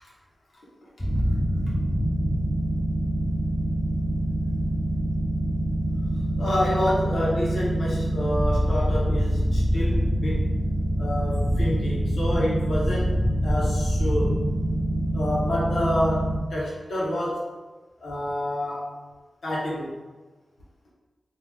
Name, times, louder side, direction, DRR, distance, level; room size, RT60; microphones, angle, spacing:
sound 1, 1.0-16.4, equal, ahead, 0.6 m, -25 dB
voice 1, 6.4-10.4 11.0-14.5 15.1-17.4 18.0-18.9 19.4-20.0, left 1 dB, 90° left, -7 dB, 0.9 m, -28 dB
3.2 x 2.5 x 3.3 m, 1.3 s
wide cardioid pair, 75°, 0 cm